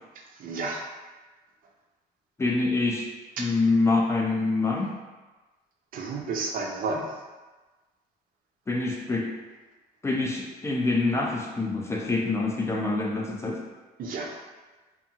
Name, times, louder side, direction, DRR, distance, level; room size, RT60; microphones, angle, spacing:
voice 1, 0.4-0.9 3.4-3.5 5.9-7.2 14.0-14.4, right 3 dB, 55° right, 1 dB, 0.5 m, -31 dB
voice 2, 2.4-3.1 3.4-4.9 8.7-9.3 10.0-13.6, left 3 dB, 15° left, -1 dB, 0.3 m, -25 dB
2.6 x 2.3 x 2.7 m, 1.2 s
cardioid pair, 110°, 17 cm